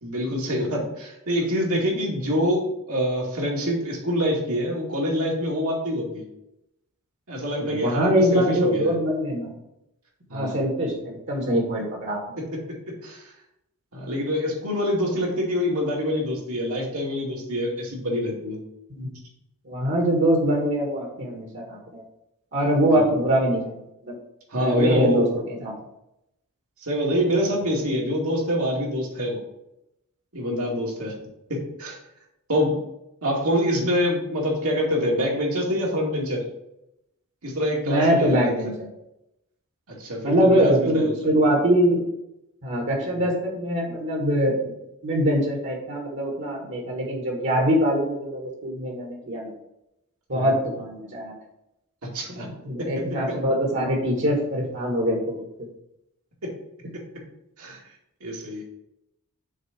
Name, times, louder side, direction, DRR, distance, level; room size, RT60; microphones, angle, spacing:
voice 1, 0.0-6.2 7.3-8.9 10.3-10.6 12.4-13.2 13.9-18.6 22.9-23.1 24.5-25.2 26.8-29.4 30.3-31.1 31.5-31.9 32.5-32.8 33.2-36.4 37.4-38.5 40.0-41.2 43.2-43.3 50.3-50.4 52.1-52.5 52.8-53.3 56.4-56.5 57.6-57.8 58.2-58.6, equal, 75° right, -2 dB, 2.3 m, -26 dB
voice 2, 7.6-9.5 10.3-12.4 18.9-19.1 19.7-22.0 22.5-23.8 24.1-24.2 24.5-25.7 33.7-33.8 37.8-38.9 40.2-42.0 42.6-44.8 45.0-49.5 50.3-51.3 52.3-55.4, equal, 55° right, -1 dB, 1.6 m, -23 dB
6.5 x 4.0 x 6.0 m, 0.85 s
head